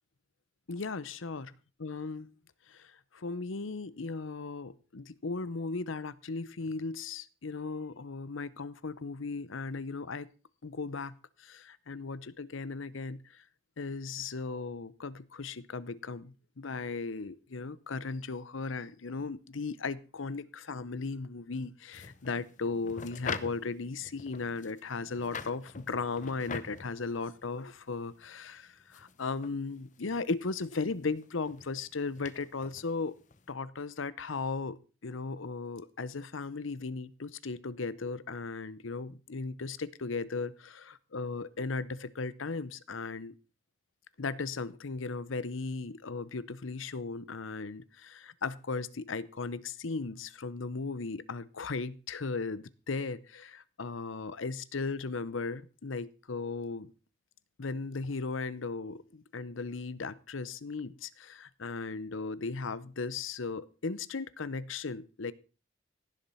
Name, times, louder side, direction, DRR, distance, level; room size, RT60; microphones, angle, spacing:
voice 1, 0.7-1.5 1.8-2.3 2.7-10.3 10.6-13.4 13.8-33.2 33.5-43.3 44.2-56.9 57.6-65.3, left 4 dB, 80° left, 0.8 m, -37 dB
sound 1, 21.9-33.5, left 5 dB, 40° left, 0.8 m, -45 dB
16.5 x 7.4 x 5.6 m
head